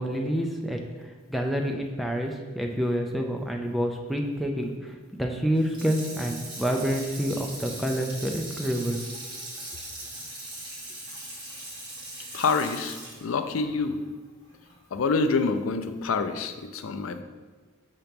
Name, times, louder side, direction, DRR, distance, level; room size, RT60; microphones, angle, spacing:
voice 1, 0.0-9.0, equal, ahead, 2 dB, 0.4 m, -28 dB
Water tap faucet / Sink (filling or washing), 5.5-14.8 15.2-15.3, right 1 dB, 20° right, 1.6 m, -40 dB
voice 2, 12.3-14.0 14.9-17.2, left 4 dB, 70° left, 8 dB, 0.4 m, -27 dB
6.8 x 3.0 x 5.2 m, 1.4 s
head